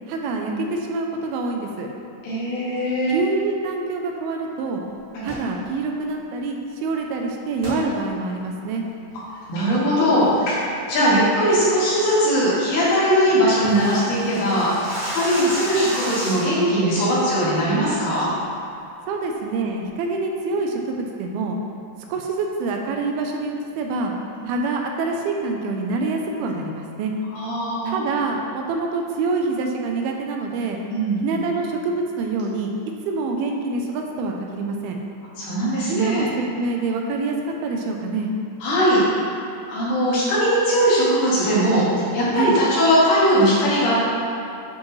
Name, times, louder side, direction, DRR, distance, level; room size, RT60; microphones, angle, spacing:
voice 1, 0.1-1.9 3.1-4.8 5.2-8.8 11.0-11.2 15.4-15.5 19.1-21.6 22.1-24.1 24.5-27.1 27.9-30.8 31.2-32.7 33.1-35.0 35.9-36.3 36.6-37.4 37.6-38.3 42.3-42.6, right 3 dB, 80° right, 2 dB, 2.5 m, -26 dB
voice 2, 2.2-3.2 5.1-5.3 9.5-14.7 15.1-18.3 24.4-24.5 27.3-28.0 30.9-31.2 35.4-36.2 38.6-39.0 39.7-41.8 42.1-44.1, equal, 80° left, -8 dB, 3.9 m, -20 dB
sound 1, 5.2-5.5 7.6-7.8 8.3-8.4 8.9-9.2 9.6-9.9 10.2-10.5 10.9-11.0 11.4-11.6 12.0-12.1 12.4-12.5 12.7-12.8 13.0-16.7, right 1 dB, 60° right, 0.4 m, -32 dB
12.0 x 5.0 x 3.2 m, 2.5 s
omnidirectional pair, 4.5 m